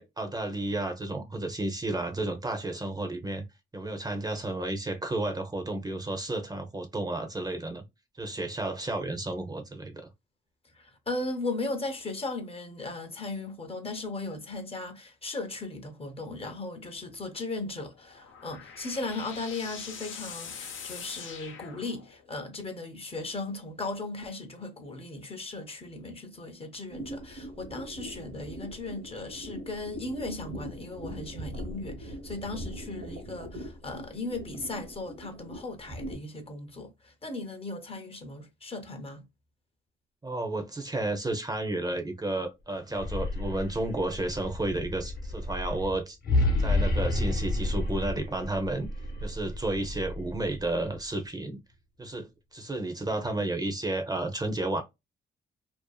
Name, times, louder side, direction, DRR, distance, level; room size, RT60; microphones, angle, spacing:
voice 1, 0.0-3.4 3.7-7.8 8.2-10.1 40.2-46.2 46.6-48.9 49.2-51.6 52.0-54.8, right 2 dB, 20° right, 0.6 m, -32 dB
voice 2, 10.7-39.2, left 2 dB, 30° left, 0.7 m, -37 dB
sound 1, 17.9-22.4, left 7 dB, 80° left, 0.7 m, -43 dB
sound 2, 26.9-36.2, equal, 55° right, 0.9 m, -41 dB
sound 3, 42.8-51.0, left 2 dB, 50° left, 0.9 m, -31 dB
2.6 x 2.3 x 2.2 m
cardioid pair, 85°, 20 cm